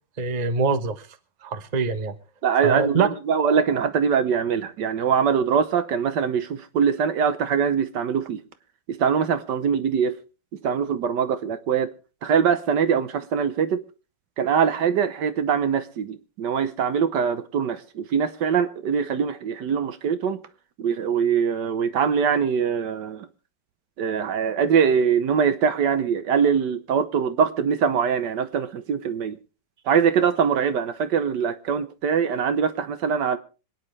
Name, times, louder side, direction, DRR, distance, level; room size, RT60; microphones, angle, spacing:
voice 1, 0.2-1.0 1.4-2.2 2.6-3.1, right 5 dB, 30° right, 0.9 m, -24 dB
voice 2, 2.4-8.4 8.9-10.1 10.6-11.9 12.2-13.8 14.4-20.4 20.8-23.3 24.0-29.4 29.9-33.4, right 7 dB, 70° right, 1.5 m, -23 dB
26.0 x 9.5 x 3.2 m
omnidirectional pair, 2.0 m